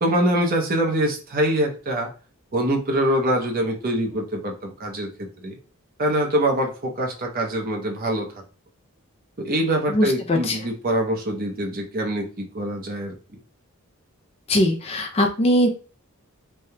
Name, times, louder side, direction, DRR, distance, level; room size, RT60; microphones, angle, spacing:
voice 1, 0.0-2.1 2.5-5.6 6.0-8.3 9.4-13.2, right 1 dB, 40° right, 1 dB, 0.7 m, -24 dB
voice 2, 9.9-10.6 14.5-15.7, left 1 dB, 25° left, 4 dB, 0.4 m, -20 dB
3.3 x 2.3 x 2.7 m, 0.36 s
head